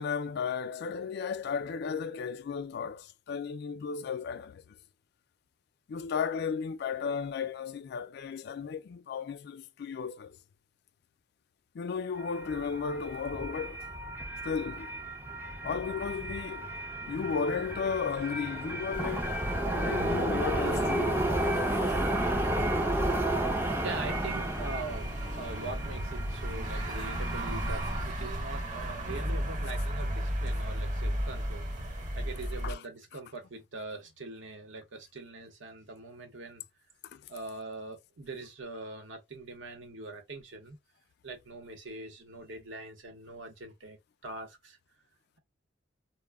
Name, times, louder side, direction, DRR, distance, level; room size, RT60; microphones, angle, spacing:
voice 1, 0.0-4.8 5.9-10.4 11.7-13.9 14.4-15.0 15.6-16.7 17.1-19.4 19.7-21.4 32.6-32.8 37.1-37.2, left 6 dB, 60° left, 0.3 m, -34 dB
sound 1, 12.2-28.1, right 1 dB, 10° right, 0.4 m, -33 dB
sound 2, 18.9-32.7, equal, 40° right, 0.9 m, -35 dB
voice 2, 23.0-36.6 37.3-40.8 41.2-44.8, right 2 dB, 75° right, 0.8 m, -43 dB
2.1 x 2.0 x 3.4 m
head